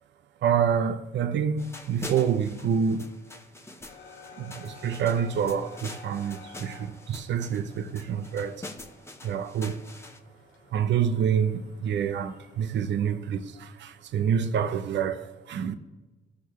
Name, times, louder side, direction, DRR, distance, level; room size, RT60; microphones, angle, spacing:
voice 1, 0.4-3.1 4.4-8.7 9.2-9.8 10.7-15.8, right 7 dB, 65° right, 0.7 m, -27 dB
sound 1, 1.6-10.2, left 2 dB, 15° left, 0.9 m, -45 dB
sound 2, 3.9-13.0, left 5 dB, 85° left, 2.0 m, -51 dB
17.0 x 6.0 x 3.1 m
cardioid pair, 90°, 20 cm